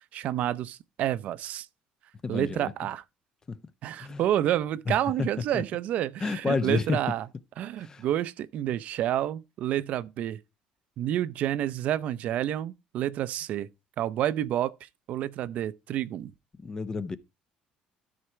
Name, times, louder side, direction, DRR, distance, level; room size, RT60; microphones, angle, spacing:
voice 1, 0.0-1.7 2.3-3.0 3.8-7.3 7.6-10.4 11.0-13.7 14.0-16.3, right 12 dB, 55° right, 0.6 m, -29 dB
voice 2, 2.2-2.7 3.5-3.6 4.0-4.2 4.9-5.3 6.2-7.0 7.8-8.0 16.6-17.2, left 4 dB, 20° left, 0.7 m, -30 dB
13.0 x 4.9 x 4.5 m
cardioid pair, 140°, 3 cm